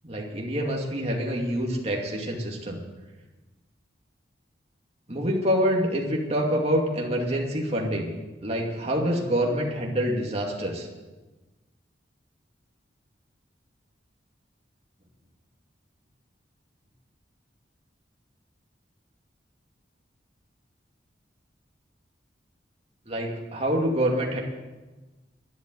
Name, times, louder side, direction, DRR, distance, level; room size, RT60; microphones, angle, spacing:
voice 1, 0.0-2.8 5.1-10.9 23.1-24.4, equal, 35° right, -1 dB, 2.4 m, -26 dB
12.0 x 11.0 x 9.2 m, 1.2 s
head